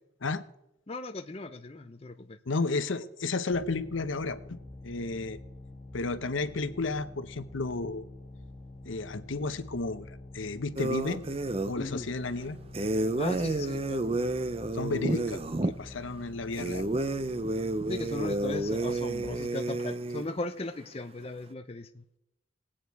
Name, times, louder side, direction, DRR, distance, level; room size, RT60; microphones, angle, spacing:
voice 1, 0.9-2.4 11.8-12.1 13.1-14.1 17.9-22.0, left 2 dB, 30° left, 7 dB, 0.6 m, -37 dB
voice 2, 2.5-4.6 4.8-5.4 5.9-8.0 8.8-11.2 11.6-12.6 14.7-16.9, left 3 dB, 80° left, 12 dB, 0.9 m, -32 dB
sound 1, 3.5-19.4, left 2 dB, 5° left, 2.9 m, -47 dB
sound 2, 10.8-11.8 12.7-15.7 16.5-20.3, right 2 dB, 30° right, 0.6 m, -30 dB
20.0 x 8.8 x 4.6 m, 0.85 s
head